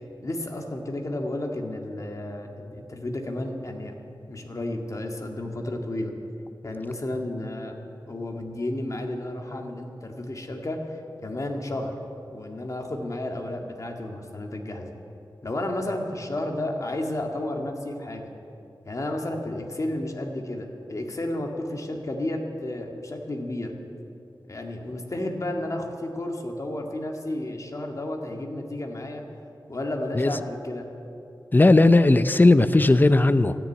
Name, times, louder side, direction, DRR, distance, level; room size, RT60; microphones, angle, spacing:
voice 1, 0.2-4.0 4.3-6.1 6.6-7.7 8.1-12.0 12.3-14.9 15.4-18.3 18.8-23.7 24.5-29.2 29.7-30.9, left 1 dB, 40° left, 2 dB, 1.8 m, -32 dB
voice 2, 31.5-33.6, left 2 dB, 25° left, 12 dB, 0.5 m, -17 dB
13.5 x 10.0 x 9.6 m, 2.7 s
wide cardioid pair, 105°, 8 cm